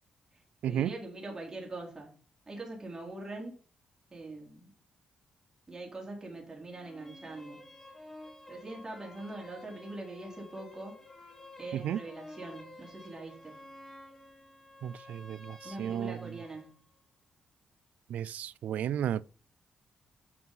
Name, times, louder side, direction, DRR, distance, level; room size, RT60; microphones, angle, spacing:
voice 1, 0.7-2.1 2.5-3.5 4.1-4.7 5.7-7.7 8.5-11.0 11.6-13.7 15.6-16.7, right 2 dB, 25° right, 4.1 m, -43 dB
sound 1, 6.7-16.7, left 2 dB, 15° left, 4.0 m, -51 dB
voice 2, 14.8-16.2 18.1-19.2, right 10 dB, 85° right, 0.4 m, -33 dB
11.0 x 6.1 x 5.6 m
cardioid pair, 100°, 2 cm